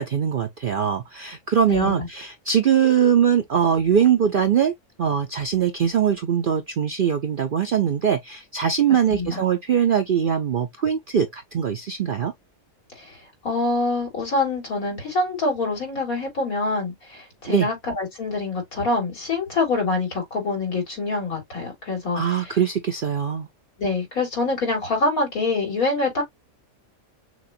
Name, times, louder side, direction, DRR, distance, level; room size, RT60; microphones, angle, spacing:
voice 1, 0.0-4.7 5.0-12.3 17.5-17.7 22.1-23.5, right 8 dB, 60° right, 0.5 m, -21 dB
voice 2, 1.7-2.1 9.1-9.4 13.0-22.5 23.8-26.2, left 3 dB, 80° left, 3.5 m, -25 dB
6.3 x 2.3 x 2.6 m
omnidirectional pair, 1.5 m